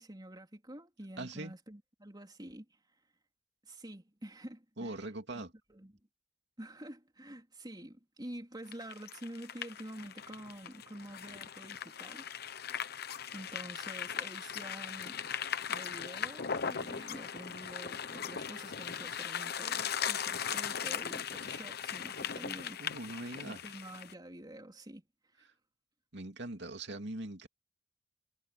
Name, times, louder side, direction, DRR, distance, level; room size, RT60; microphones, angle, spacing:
voice 1, 0.0-3.0 3.6-5.4 5.7-5.9 6.6-12.2 13.3-15.3 15.7-22.9 23.4-25.0 25.3-25.5, right 1 dB, 25° right, 3.6 m, -48 dB
voice 2, 1.2-1.5 4.8-5.5 22.8-23.6 26.1-27.5, right 2 dB, 65° right, 2.7 m, -41 dB
sound 1, 8.7-24.1, left 8 dB, 55° left, 1.0 m, -39 dB
head